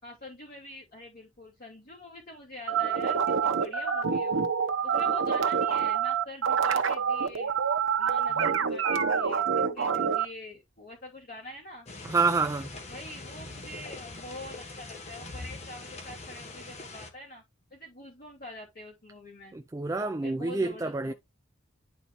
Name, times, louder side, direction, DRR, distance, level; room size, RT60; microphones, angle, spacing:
voice 1, 0.0-4.5 4.8-7.5 8.0-11.9 12.9-17.4 17.7-19.6 20.2-21.1, left 1 dB, 50° left, 2.8 m, -45 dB
sound 1, 2.7-10.3, right 6 dB, 85° right, 0.9 m, -26 dB
sound 2, 11.9-17.1, left 2 dB, 35° left, 1.4 m, -42 dB
voice 2, 12.0-12.7 19.5-21.1, right 3 dB, 15° right, 0.3 m, -28 dB
11.0 x 4.1 x 3.0 m
head